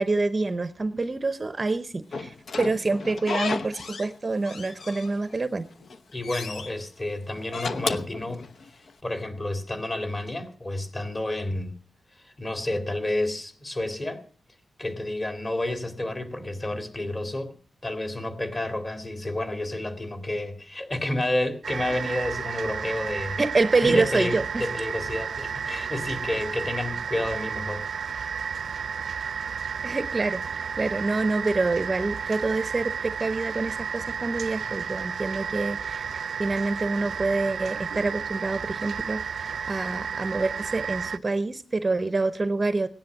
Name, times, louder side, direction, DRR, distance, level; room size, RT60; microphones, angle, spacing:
voice 1, 0.0-5.7 23.4-24.6 29.8-42.9, right 3 dB, 30° right, 0.7 m, -27 dB
Slam / Squeak, 2.1-4.1 4.4-5.4 5.8-6.7 7.4-8.9, left 4 dB, 60° left, 1.0 m, -33 dB
voice 2, 6.1-8.5 9.0-11.7 12.2-14.2 14.8-17.5 17.8-23.4 23.8-27.8, left 1 dB, 25° left, 2.5 m, -30 dB
sound 1, 21.6-41.2, right 6 dB, 65° right, 0.6 m, -32 dB
17.0 x 10.5 x 6.1 m
wide cardioid pair, 135°, 0 cm